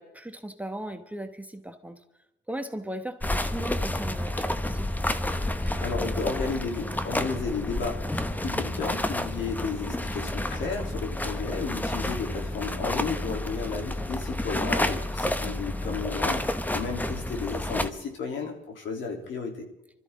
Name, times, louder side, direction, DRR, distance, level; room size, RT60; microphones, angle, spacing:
voice 1, 0.0-2.0 2.5-4.9 14.6-14.7, right 1 dB, 5° right, 6 dB, 1.2 m, -37 dB
sound 1, 3.2-17.9, left 1 dB, 10° left, 0.9 m, -30 dB
voice 2, 5.8-16.4 16.7-19.7, left 4 dB, 70° left, 1 dB, 3.3 m, -33 dB
24.5 x 13.5 x 3.7 m, 0.89 s
cardioid pair, 90°, 20 cm